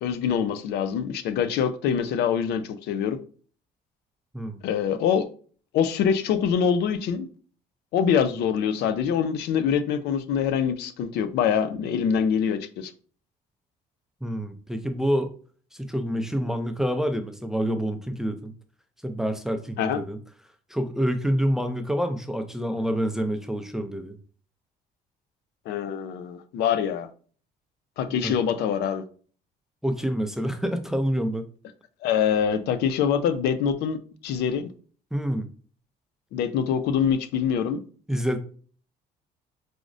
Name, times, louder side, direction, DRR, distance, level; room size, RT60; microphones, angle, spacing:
voice 1, 0.0-3.2 4.6-5.3 5.7-7.3 7.9-12.9 19.8-20.0 25.7-27.1 28.0-29.0 32.0-34.7 36.3-37.8, left 7 dB, 75° left, 0.4 m, -24 dB
voice 2, 14.2-15.3 15.8-18.5 19.0-20.2 20.7-24.2 28.2-28.3 29.8-31.5 35.1-35.5 38.1-38.4, equal, 5° right, 0.4 m, -27 dB
4.8 x 2.0 x 2.5 m
cardioid pair, 110°, 17 cm